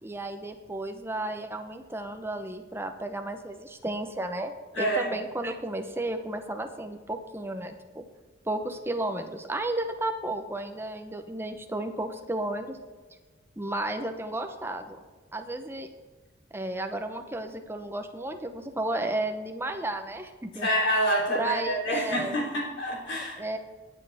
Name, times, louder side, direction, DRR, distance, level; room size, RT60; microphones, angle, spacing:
voice 1, 0.0-8.0 8.4-12.8 13.6-15.0 15.3-15.9 16.5-20.7 21.3-22.4 23.4-23.6, right 2 dB, 10° right, 5 dB, 0.8 m, -33 dB
voice 2, 4.7-5.1 20.6-23.4, equal, 75° left, -2 dB, 3.5 m, -27 dB
21.0 x 7.4 x 3.5 m, 1.4 s
head